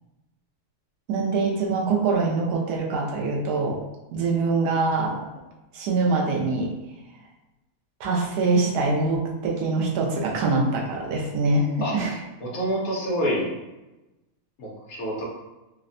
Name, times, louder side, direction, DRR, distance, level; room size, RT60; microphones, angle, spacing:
voice 1, 1.1-3.8 4.1-5.3 5.7-6.7 8.0-12.1, right 3 dB, 90° right, -1 dB, 1.2 m, -24 dB
voice 2, 12.4-13.5 14.6-15.2, equal, 70° left, -3 dB, 1.1 m, -27 dB
3.3 x 2.1 x 2.5 m, 1.0 s
omnidirectional pair, 1.6 m